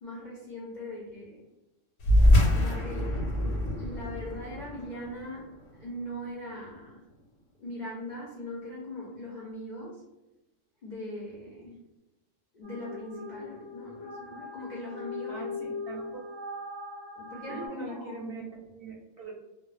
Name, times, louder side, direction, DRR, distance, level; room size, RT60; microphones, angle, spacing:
voice 1, 0.0-1.5 2.5-3.2 3.8-7.0 7.6-10.0 10.8-11.8 12.5-15.6 17.1-18.2, left 1 dB, 60° left, -5 dB, 0.5 m, -40 dB
sound 1, 2.0-6.9, left 1 dB, 90° left, 1.0 m, -25 dB
sound 2, 12.6-17.7, left 3 dB, 10° left, 0.6 m, -40 dB
voice 2, 15.3-16.2 17.5-19.3, right 3 dB, 60° right, -3 dB, 0.7 m, -41 dB
2.1 x 2.0 x 3.1 m, 1.0 s
omnidirectional pair, 1.3 m